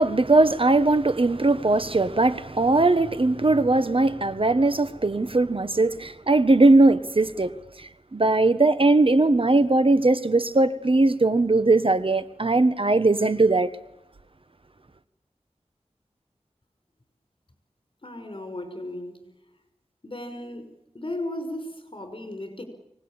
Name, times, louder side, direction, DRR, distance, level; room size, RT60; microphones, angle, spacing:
voice 1, 0.0-7.5 7.8-13.7, right 2 dB, 50° right, 1.2 m, -20 dB
voice 2, 18.0-19.3 20.0-22.6, left 1 dB, 45° left, 5.3 m, -35 dB
24.5 x 19.0 x 8.8 m
wide cardioid pair, 60°, 12 cm